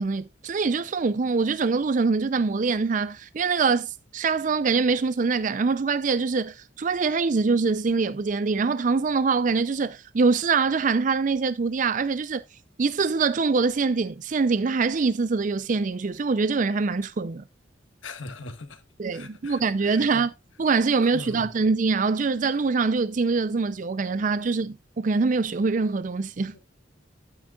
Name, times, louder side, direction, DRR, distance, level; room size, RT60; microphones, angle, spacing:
voice 1, 0.0-12.4 12.8-17.4 19.0-20.3 20.6-26.5, right 4 dB, 40° right, 0.4 m, -24 dB
voice 2, 18.0-18.8 19.1-20.0 21.1-21.5 26.5-26.6, left 2 dB, 90° left, 1.5 m, -40 dB
11.5 x 9.0 x 2.3 m
head